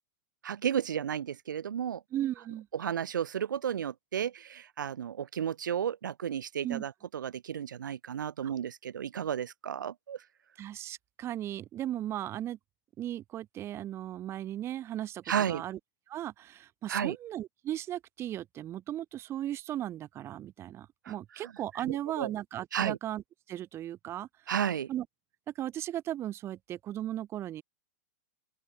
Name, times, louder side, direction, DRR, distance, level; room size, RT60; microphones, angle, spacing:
voice 1, 0.4-2.0 2.7-10.2 15.3-15.6 16.9-17.2 21.0-21.5 21.8-22.3 22.7-23.0 24.5-24.9, right 9 dB, 90° right, 2.5 m, -33 dB
voice 2, 2.1-2.7 6.6-6.8 8.4-8.5 10.6-12.6 13.0-15.8 16.1-23.2 23.5-24.3 24.9-25.0 25.5-27.6, right 12 dB, 25° right, 1.7 m, -36 dB
open air
hypercardioid pair, 140°, 10 cm